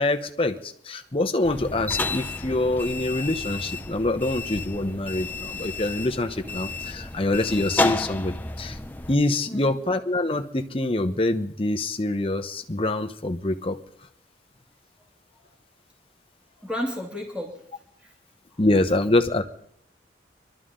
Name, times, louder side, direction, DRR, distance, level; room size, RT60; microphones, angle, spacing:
voice 1, 0.0-8.8 9.1-13.8 18.6-19.4, left 2 dB, 30° left, 7 dB, 0.9 m, -25 dB
sound 1, 1.4-9.1, left 3 dB, 10° left, 0.5 m, -31 dB
voice 2, 9.5-9.8 15.3-15.5 16.6-17.6 18.0-18.1 18.5-18.7, left 1 dB, 5° right, -2 dB, 2.7 m, -34 dB
23.5 x 13.0 x 3.8 m, 0.70 s
head